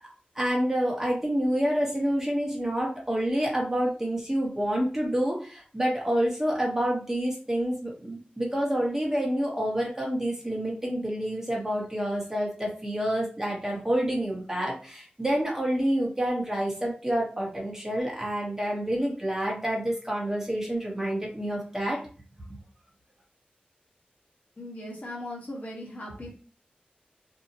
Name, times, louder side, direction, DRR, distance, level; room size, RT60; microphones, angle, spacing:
voice 1, 0.3-22.0 22.5-22.6, equal, 15° right, -3 dB, 0.9 m, -28 dB
voice 2, 24.6-26.3, left 1 dB, 55° left, -2 dB, 1.1 m, -38 dB
2.7 x 2.1 x 2.7 m, 0.39 s
wide cardioid pair, 75°, 3 cm